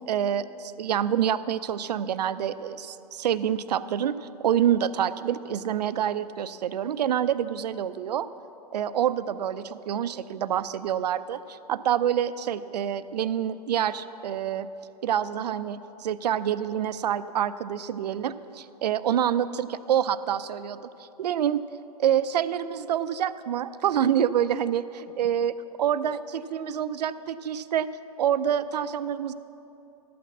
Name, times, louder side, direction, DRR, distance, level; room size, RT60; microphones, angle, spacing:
voice 1, 0.1-8.3 8.7-14.7 15.0-21.6 22.0-25.5 25.8-27.9 28.2-29.3, right 9 dB, 75° right, 14 dB, 0.5 m, -27 dB
12.5 x 6.0 x 7.1 m, 3.0 s
hypercardioid pair, 120°, 21 cm